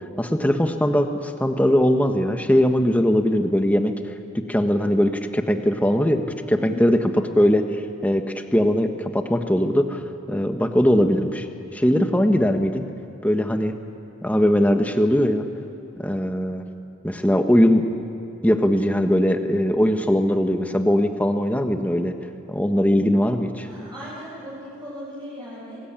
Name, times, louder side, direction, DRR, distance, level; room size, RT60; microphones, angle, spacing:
voice 1, 0.2-3.9 4.3-6.2 6.5-7.1 7.4-7.6 8.0-8.2 8.5-10.0 10.3-11.5 11.7-12.8 13.2-13.7 14.2-15.4 16.0-16.6 17.0-17.9 18.4-22.1 22.5-23.7, equal, 10° left, 5 dB, 1.3 m, -20 dB
voice 2, 6.6-7.0 23.6-25.8, equal, 20° right, -8 dB, 7.4 m, -37 dB
27.0 x 20.0 x 8.9 m, 2.6 s
head